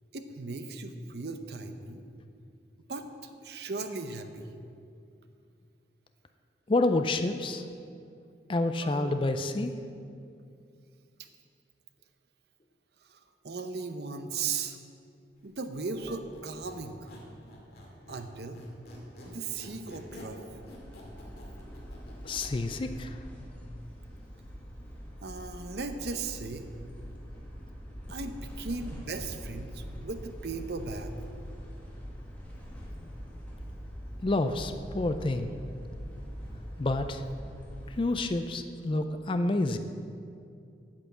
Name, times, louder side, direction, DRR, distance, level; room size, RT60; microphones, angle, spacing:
voice 1, 0.1-2.0 2.9-4.5 8.8-9.1 13.0-14.8 15.4-17.1 18.1-18.6 19.2-20.4 25.2-26.7 28.1-31.1, right 4 dB, 65° right, 8 dB, 0.7 m, -37 dB
voice 2, 6.7-7.7 8.5-9.7 22.2-23.2 34.2-35.5 36.8-37.2 37.9-39.8, left 2 dB, 30° left, 8 dB, 0.4 m, -28 dB
Squeak, 15.8-18.3 18.5-22.6, left 1 dB, 55° left, 2.3 m, -48 dB
sound 1, 20.5-38.1, equal, 10° left, 1.7 m, -43 dB
8.7 x 8.3 x 7.3 m, 2.5 s
head